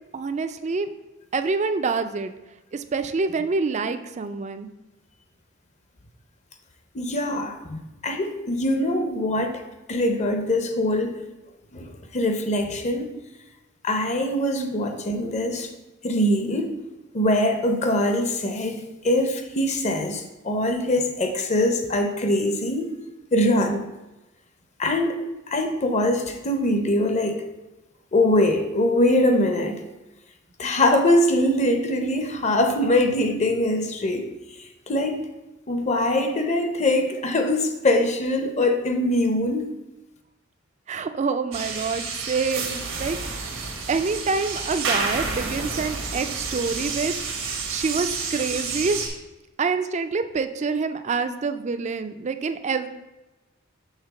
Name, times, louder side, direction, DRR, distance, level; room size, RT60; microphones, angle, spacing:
voice 1, 0.1-0.9 1.3-2.3 2.7-4.7 14.6-14.8 40.9-43.5 43.9-47.2 47.7-49.0 49.6-52.9, right 4 dB, 35° right, 9 dB, 0.4 m, -26 dB
voice 2, 6.9-9.6 9.9-11.2 11.7-11.9 12.1-13.1 13.8-15.7 16.0-16.7 17.1-22.9 23.3-23.8 24.8-25.1 25.5-27.4 28.1-29.8 30.6-34.3 34.9-35.2 35.7-39.7, left 1 dB, 35° left, 6 dB, 0.7 m, -23 dB
sound 1, 41.5-49.1, right 4 dB, 90° right, 1.3 m, -30 dB
5.7 x 3.6 x 5.8 m, 1.0 s
head